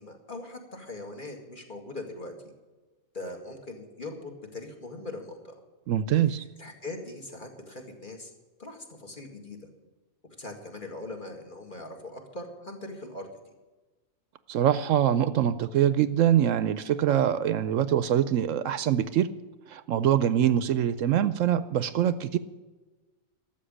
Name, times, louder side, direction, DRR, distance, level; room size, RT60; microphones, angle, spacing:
voice 1, 0.0-2.5 3.1-5.6 6.2-8.3 8.6-9.7 10.4-13.5, left 2 dB, 35° left, 2 dB, 2.3 m, -41 dB
voice 2, 5.9-6.4 14.5-19.3 19.7-22.4, right 10 dB, 70° right, 14 dB, 0.9 m, -24 dB
13.0 x 7.5 x 10.0 m, 1.2 s
omnidirectional pair, 1.4 m